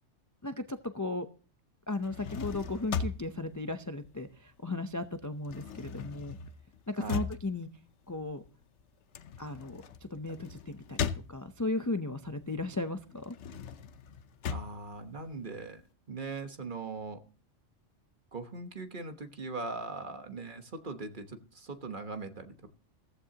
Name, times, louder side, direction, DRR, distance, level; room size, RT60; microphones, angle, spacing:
voice 1, 0.4-1.3 1.9-6.4 6.9-7.7 8.1-8.4 9.4-13.4, left 2 dB, 20° left, 7 dB, 0.5 m, -36 dB
sound 1, 1.9-4.7 5.0-11.8 12.3-15.8, left 6 dB, 70° left, 1.1 m, -39 dB
voice 2, 14.5-15.8 16.1-17.2 18.3-22.7, right 3 dB, 45° right, 7 dB, 1.3 m, -40 dB
15.0 x 14.5 x 2.9 m, 0.39 s
omnidirectional pair, 1.3 m